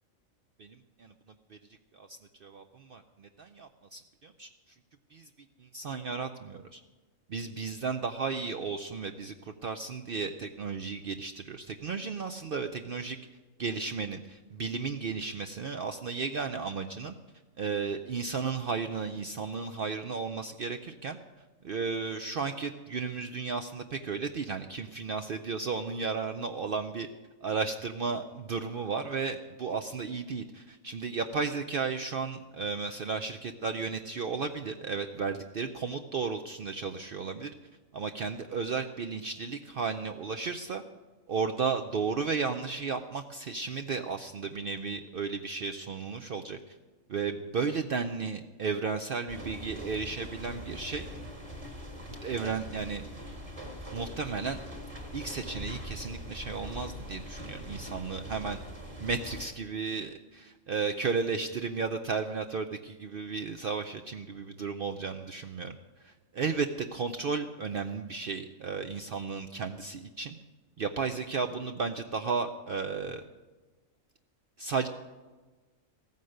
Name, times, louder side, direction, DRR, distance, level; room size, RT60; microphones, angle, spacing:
voice 1, 0.6-1.1 1.5-1.6 1.9-4.5 5.1-5.3 5.6-6.8 7.3-13.2 13.6-17.1 17.6-21.2 21.6-27.1 27.4-37.5 37.9-40.8 41.3-46.7 47.1-51.1 52.1-53.0 53.9-54.6 55.1-58.6 59.0-65.7 66.0-70.3 70.8-73.2 74.6-74.9, right 5 dB, 55° right, 7 dB, 0.7 m, -34 dB
sound 1, 49.3-59.5, equal, 25° right, 1.9 m, -42 dB
15.0 x 9.4 x 6.5 m, 1.3 s
omnidirectional pair, 1.3 m